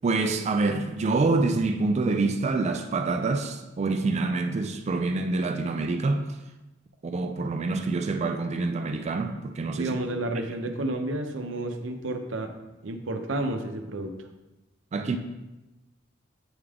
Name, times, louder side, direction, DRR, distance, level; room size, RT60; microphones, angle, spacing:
voice 1, 0.0-6.3 7.0-9.9 14.9-15.2, right 3 dB, 35° right, 0.3 m, -26 dB
voice 2, 9.8-12.5 12.8-14.1, right 2 dB, 85° right, 0.6 m, -31 dB
8.0 x 3.6 x 3.3 m
head